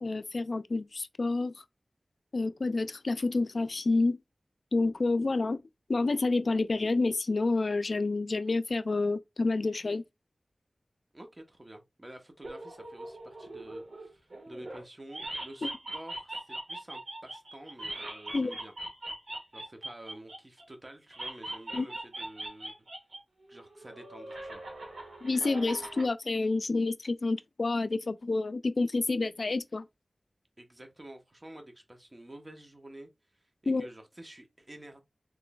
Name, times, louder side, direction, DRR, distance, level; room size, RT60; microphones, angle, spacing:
voice 1, 0.0-1.6 2.3-4.2 4.7-5.6 5.9-10.0 15.6-15.7 18.3-18.5 21.7-21.9 25.2-29.9 33.7-33.9, left 3 dB, 70° left, 0.3 m, -29 dB
voice 2, 11.1-18.7 19.5-22.8 23.5-24.6 30.6-35.0, right 1 dB, 35° right, 0.9 m, -49 dB
sound 1, 12.4-14.8 15.1-20.6 21.1-23.2 23.5-26.1, right 1 dB, 80° right, 1.5 m, -41 dB
3.7 x 3.1 x 2.3 m
wide cardioid pair, 50°, 0 cm